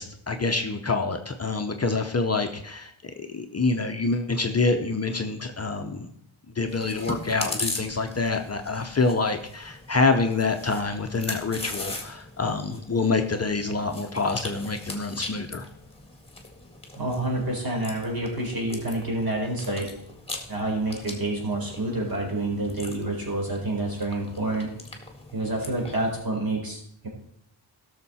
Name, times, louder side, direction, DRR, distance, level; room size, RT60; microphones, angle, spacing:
voice 1, 0.0-6.1 6.6-15.6, left 3 dB, 30° left, 4 dB, 0.8 m, -26 dB
Chewing mastication, 6.7-26.2, left 2 dB, 10° left, 1.8 m, -40 dB
voice 2, 16.9-19.9 20.5-24.7 25.3-27.1, right 2 dB, 45° right, -1 dB, 4.1 m, -28 dB
17.0 x 6.7 x 4.2 m, 0.74 s
wide cardioid pair, 175°, 48 cm